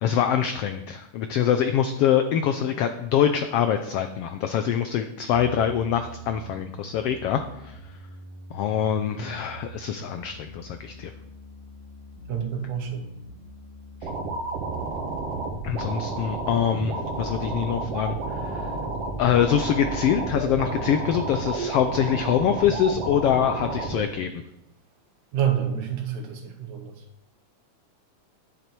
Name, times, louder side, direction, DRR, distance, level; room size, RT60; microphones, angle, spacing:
voice 1, 0.0-7.8 8.5-11.1 15.6-18.7 19.2-24.4, left 9 dB, 85° left, 8 dB, 1.3 m, -24 dB
sound 1, 5.3-23.3, equal, 30° right, 2.2 m, -43 dB
voice 2, 12.3-13.1 25.3-26.9, right 9 dB, 75° right, 5 dB, 2.7 m, -28 dB
sound 2, 14.0-24.0, right 3 dB, 55° right, 2.3 m, -31 dB
10.0 x 9.1 x 4.6 m, 0.88 s
omnidirectional pair, 3.4 m